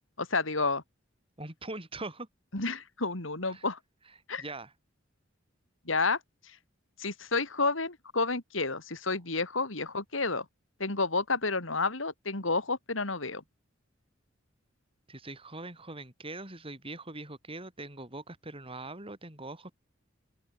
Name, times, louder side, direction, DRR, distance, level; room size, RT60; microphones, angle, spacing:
voice 1, 0.2-0.8 2.5-3.8 4.3-4.4 5.9-6.2 7.0-10.5 10.8-13.4, left 3 dB, 80° left, 3.7 m, -30 dB
voice 2, 1.4-2.3 3.5-3.7 4.4-4.7 15.1-19.8, right 2 dB, 30° right, 6.6 m, -42 dB
head